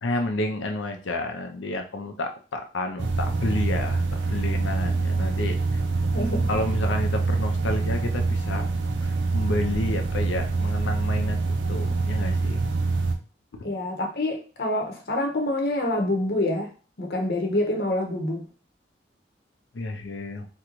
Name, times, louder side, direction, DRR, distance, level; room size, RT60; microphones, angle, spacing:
voice 1, 0.0-5.8 6.5-8.7 9.0-12.6 13.5-13.7 19.7-20.5, left 2 dB, 90° left, 4 dB, 0.6 m, -30 dB
sound 1, 3.0-13.1, right 3 dB, 75° right, 0.5 m, -25 dB
voice 2, 13.6-16.7 17.0-18.4, left 1 dB, 55° left, 1 dB, 0.8 m, -26 dB
3.7 x 2.2 x 3.0 m, 0.36 s
head